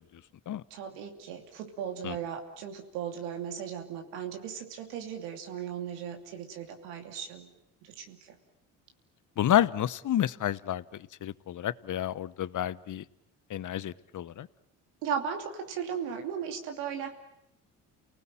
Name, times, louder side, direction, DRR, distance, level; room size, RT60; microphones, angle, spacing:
voice 1, 0.7-7.5 7.8-8.4 15.0-17.1, right 8 dB, 85° right, 4 dB, 2.9 m, -37 dB
voice 2, 9.4-13.0 13.5-14.5, left 11 dB, 50° left, 18 dB, 1.0 m, -30 dB
29.5 x 19.0 x 9.0 m, 0.82 s
supercardioid pair, 65°, 39 cm